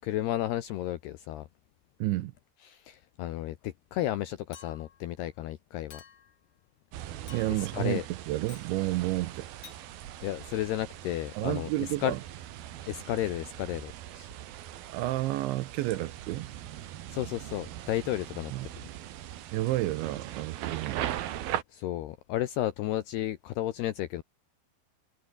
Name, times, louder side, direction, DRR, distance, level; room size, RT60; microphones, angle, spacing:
voice 1, 0.0-1.5 2.6-6.0 7.6-8.1 10.2-12.1 12.9-14.3 17.1-18.5 21.7-24.2, left 13 dB, 75° left, 2.5 m, -33 dB
voice 2, 2.0-2.3 7.3-9.5 11.4-12.2 14.9-16.5 18.5-18.7 19.5-21.0, right 17 dB, 80° right, 2.9 m, -30 dB
Chink clink, 4.5-5.0 5.9-6.4 7.3-7.8 8.5-8.7 9.6-9.8, left 7 dB, 55° left, 1.5 m, -50 dB
sound 1, 6.9-21.6, right 12 dB, 65° right, 2.6 m, -40 dB
omnidirectional pair, 5.9 m